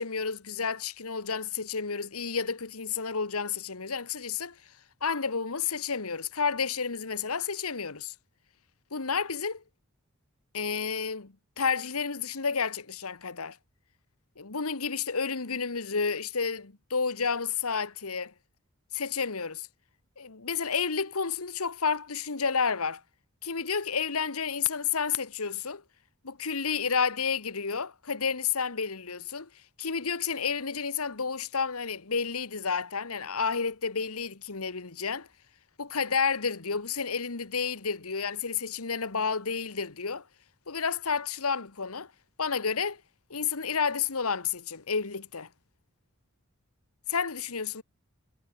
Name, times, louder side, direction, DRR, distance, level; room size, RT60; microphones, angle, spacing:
voice 1, 0.0-4.5 5.0-8.1 8.9-9.6 10.5-13.6 14.4-18.3 18.9-19.7 20.2-23.0 23.4-25.8 26.2-29.5 29.8-35.3 35.8-40.2 40.7-42.1 42.4-43.0 43.3-45.5 47.1-47.8, left 5 dB, 90° left, 1.6 m, -30 dB
head